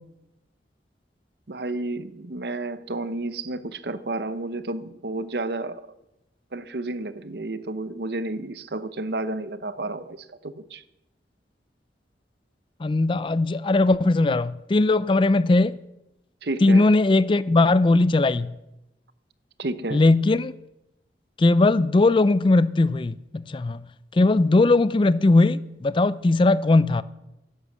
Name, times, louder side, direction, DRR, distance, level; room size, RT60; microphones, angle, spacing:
voice 1, 1.5-5.9 6.5-10.8 16.4-16.9 19.6-20.0, right 2 dB, 65° right, 0.8 m, -31 dB
voice 2, 12.8-15.8 16.6-18.5 19.9-20.5 21.4-23.8 24.1-27.0, left 2 dB, 30° left, 0.4 m, -19 dB
11.5 x 11.0 x 7.7 m
head